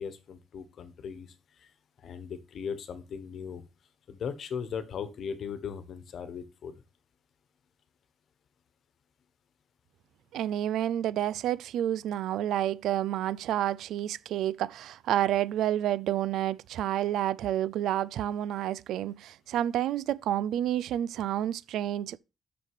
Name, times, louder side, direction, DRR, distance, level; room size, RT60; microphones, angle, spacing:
voice 1, 0.0-1.7 2.0-3.6 4.1-6.8, left 6 dB, 60° left, 1.2 m, -38 dB
voice 2, 10.3-22.2, right 12 dB, 80° right, 0.3 m, -29 dB
6.5 x 6.1 x 4.8 m
cardioid pair, 90°, 0 cm